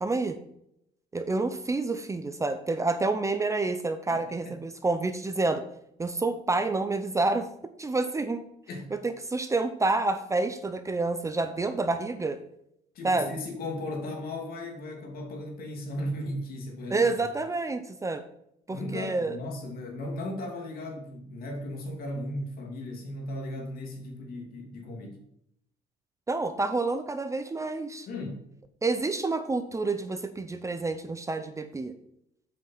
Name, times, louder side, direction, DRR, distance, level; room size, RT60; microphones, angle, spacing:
voice 1, 0.0-0.4 1.1-5.6 6.0-7.5 7.8-8.4 8.9-12.4 13.0-13.3 16.9-18.2 18.7-19.4 26.3-28.1 28.8-31.9, right 3 dB, 20° right, 9 dB, 0.6 m, -28 dB
voice 2, 4.1-4.5 8.7-8.9 12.9-17.1 18.7-25.2 28.1-28.4, left 1 dB, 60° left, 2 dB, 2.4 m, -36 dB
7.8 x 5.5 x 5.5 m, 0.75 s
cardioid pair, 110°, 17 cm